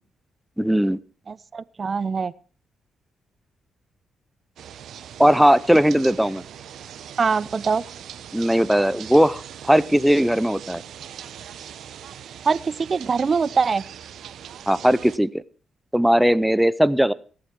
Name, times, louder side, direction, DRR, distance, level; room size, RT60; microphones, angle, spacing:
voice 1, 0.6-1.0 5.2-6.4 8.3-10.8 14.7-15.4 15.9-17.1, equal, 5° right, 18 dB, 0.7 m, -18 dB
voice 2, 1.3-2.3 7.2-7.8 12.4-13.8, right 5 dB, 45° right, 20 dB, 0.6 m, -23 dB
sound 1, 4.6-15.2, right 9 dB, 75° right, 1.0 m, -41 dB
17.5 x 8.0 x 5.9 m, 0.41 s
cardioid pair, 65°, 0 cm